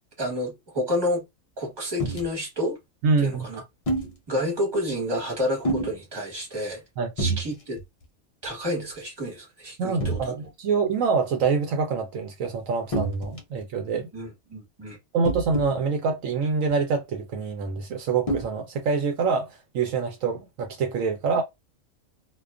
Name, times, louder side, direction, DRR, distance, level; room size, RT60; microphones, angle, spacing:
voice 1, 0.2-1.2 1.6-2.8 3.2-3.6 4.3-6.8 7.2-7.8 8.4-10.2 14.1-15.0 21.3-21.4, left 1 dB, 20° right, 1.1 m, -29 dB
sound 1, 2.0-2.3 3.9-4.1 5.6-5.9 7.2-7.5 7.8-8.0 8.4-8.5 10.0-10.3 12.9-13.6 15.2-15.7 16.7-16.8 18.3-18.5, right 2 dB, 65° left, 0.3 m, -27 dB
voice 2, 3.0-3.5 7.0-7.1 9.8-14.1 15.1-19.5 19.7-21.4, right 5 dB, 75° right, 0.9 m, -25 dB
2.4 x 2.2 x 2.4 m
omnidirectional pair, 1.4 m